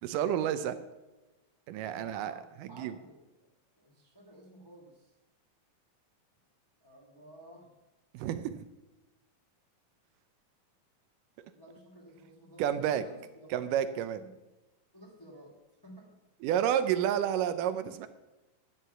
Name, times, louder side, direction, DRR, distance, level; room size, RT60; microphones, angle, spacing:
voice 1, 0.0-0.8 1.7-2.3 2.8-2.9 8.1-8.7 12.6-13.0 13.5-14.2 16.4-18.1, right 10 dB, 80° right, 12 dB, 2.1 m, -30 dB
voice 2, 1.8-3.5 3.8-5.1 6.8-7.7 11.5-13.5 14.1-14.4 14.9-15.6 15.8-16.1, right 1 dB, 10° left, -3 dB, 1.9 m, -53 dB
13.0 x 9.2 x 5.7 m, 1.1 s
omnidirectional pair, 4.0 m